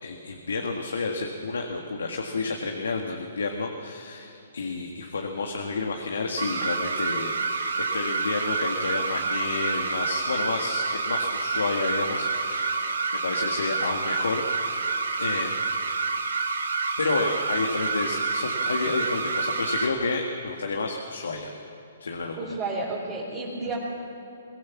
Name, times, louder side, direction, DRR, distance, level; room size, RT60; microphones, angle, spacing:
voice 1, 0.0-12.9 13.2-15.6 17.0-21.5 22.0-22.4, left 3 dB, 85° left, 2 dB, 1.9 m, -30 dB
sound 1, 6.4-19.9, right 4 dB, 85° right, 2.2 m, -28 dB
voice 2, 22.4-23.8, right 3 dB, 25° right, -6 dB, 4.0 m, -31 dB
22.5 x 17.0 x 7.2 m, 2.9 s
hypercardioid pair, 145°, 0 cm